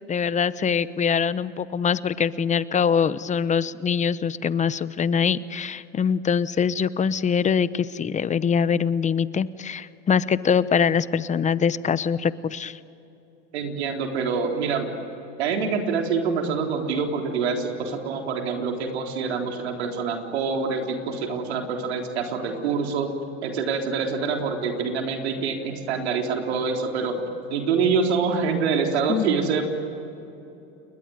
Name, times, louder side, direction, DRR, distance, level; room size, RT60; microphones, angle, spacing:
voice 1, 0.1-12.8 29.1-29.3, left 7 dB, 20° left, 16 dB, 0.9 m, -23 dB
voice 2, 13.5-14.9 15.4-23.1 23.4-27.2 27.5-29.6, right 5 dB, 85° right, 3 dB, 3.9 m, -26 dB
29.5 x 21.0 x 9.4 m, 2.9 s
hypercardioid pair, 100°, 32 cm